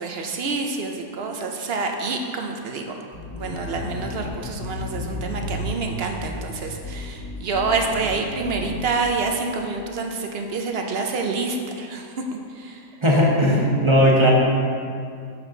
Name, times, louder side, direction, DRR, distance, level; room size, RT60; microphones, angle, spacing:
voice 1, 0.0-2.9 3.4-12.2 12.5-12.9, right 4 dB, 60° right, 3 dB, 0.7 m, -27 dB
sound 1, 3.1-9.1, left 1 dB, 10° left, 1.0 m, -33 dB
voice 2, 13.0-14.3, equal, 25° right, -3 dB, 0.9 m, -17 dB
7.4 x 6.2 x 3.8 m, 2.3 s
omnidirectional pair, 1.5 m